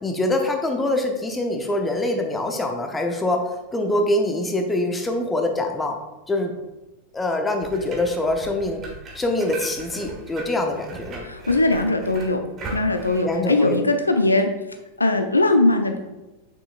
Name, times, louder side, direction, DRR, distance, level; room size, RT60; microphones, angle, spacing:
voice 1, 0.0-3.4 3.7-6.0 6.3-6.5 7.1-8.8 9.1-11.3 13.2-13.8, left 1 dB, 10° left, 3 dB, 0.9 m, -24 dB
sound 1, 7.6-13.2, right 2 dB, 30° right, 1.6 m, -38 dB
voice 2, 11.2-12.4 12.7-14.5 15.0-16.0, left 2 dB, 80° left, 6 dB, 0.5 m, -20 dB
6.7 x 6.0 x 2.5 m, 1.0 s
figure-of-eight pair, 90°, 0 cm